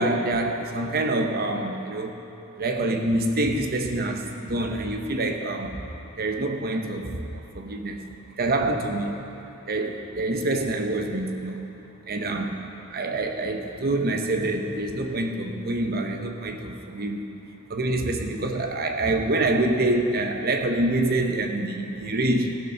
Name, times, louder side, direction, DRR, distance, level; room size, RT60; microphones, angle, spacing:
voice 1, 0.0-2.2 2.6-5.8 6.2-8.1 8.4-9.2 9.7-11.6 12.1-12.5 12.9-17.3 17.7-22.6, right 2 dB, 45° right, 5 dB, 0.9 m, -26 dB
15.5 x 6.8 x 5.7 m, 3.0 s
head